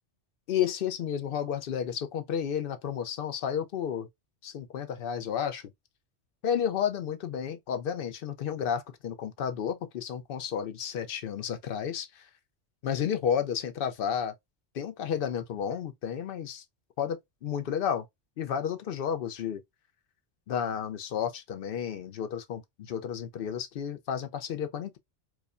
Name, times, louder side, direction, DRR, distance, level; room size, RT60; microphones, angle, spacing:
voice 1, 0.5-4.1 4.4-5.6 6.4-12.3 12.8-14.3 14.7-16.6 17.0-18.0 18.4-19.6 20.5-25.0, left 8 dB, 60° left, 0.6 m, -32 dB
4.7 x 2.1 x 2.4 m
omnidirectional pair, 1.2 m